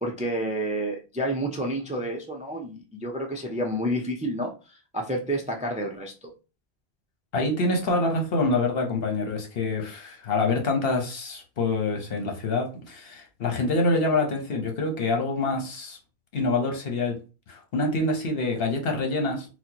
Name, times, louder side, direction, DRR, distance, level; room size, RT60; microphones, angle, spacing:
voice 1, 0.0-6.3, right 1 dB, 10° right, 0.4 m, -30 dB
voice 2, 7.3-16.0 16.3-17.2 17.5-19.5, left 2 dB, 65° left, 1.1 m, -26 dB
4.2 x 2.2 x 2.8 m
omnidirectional pair, 1.1 m